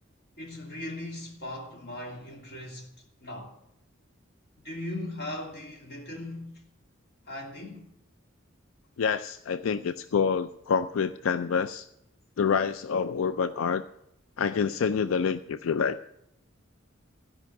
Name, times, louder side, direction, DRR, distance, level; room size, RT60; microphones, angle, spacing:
voice 1, 0.4-3.5 4.6-6.6 7.3-7.9, left 1 dB, 55° left, 2.9 m, -39 dB
voice 2, 9.0-11.9 12.4-13.8 14.4-16.0, left 6 dB, 85° left, 0.4 m, -27 dB
15.0 x 5.6 x 9.2 m
head